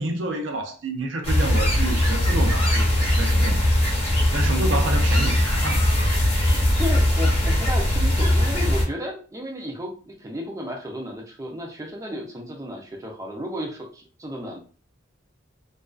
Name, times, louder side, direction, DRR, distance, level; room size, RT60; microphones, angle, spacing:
voice 1, 0.0-3.7 4.3-5.8, right 2 dB, 70° right, 0.5 m, -29 dB
sound 1, 1.2-8.8, left 1 dB, 30° left, 0.8 m, -20 dB
voice 2, 6.8-14.6, equal, 15° right, 0.5 m, -33 dB
2.4 x 2.3 x 2.3 m
head